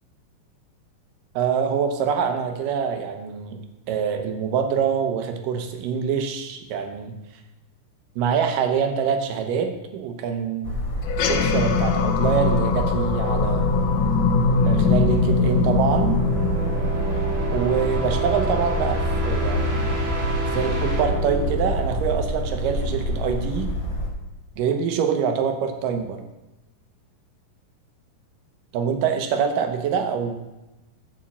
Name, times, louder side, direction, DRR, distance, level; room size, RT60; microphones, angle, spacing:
voice 1, 1.4-3.6 3.9-7.1 8.2-10.7 11.3-13.7 14.7-16.2 17.5-19.8 20.5-23.7 24.6-26.2 28.7-30.4, right 7 dB, 75° right, 6 dB, 2.5 m, -25 dB
sound 1, 10.6-24.1, equal, 55° left, 1.1 m, -27 dB
sound 2, 11.0-17.8, left 5 dB, 75° left, 2.2 m, -22 dB
sound 3, 15.1-22.8, right 3 dB, 55° right, 0.6 m, -30 dB
7.3 x 6.0 x 7.2 m, 1.0 s
omnidirectional pair, 3.9 m